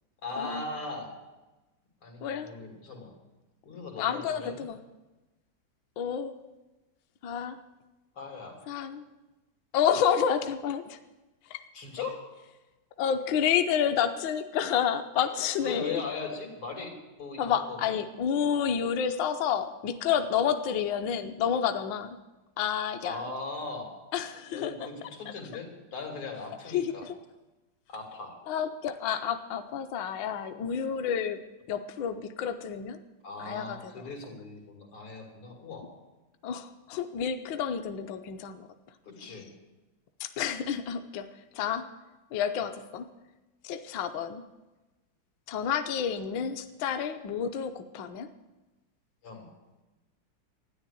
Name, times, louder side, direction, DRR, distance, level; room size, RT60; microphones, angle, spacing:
voice 1, 0.2-1.1 2.0-3.1 3.7-4.6 8.2-8.6 11.7-12.2 15.6-17.8 23.0-23.9 24.5-27.1 27.9-28.4 33.2-35.9 39.0-39.5 49.2-49.5, left 4 dB, 90° left, 1 dB, 3.6 m, -39 dB
voice 2, 4.0-4.8 6.0-6.4 7.2-7.6 8.7-9.0 9.7-11.0 11.5-11.6 13.0-16.0 17.4-22.2 22.6-23.2 24.1-24.7 26.7-27.2 28.5-31.4 31.7-33.0 33.4-34.1 36.4-38.7 39.2-39.4 40.2-41.3 41.5-41.9 42.3-43.1 43.6-44.4 45.5-48.3, left 8 dB, 70° left, 7 dB, 1.3 m, -29 dB
13.0 x 10.0 x 8.3 m, 1.1 s
omnidirectional pair, 2.3 m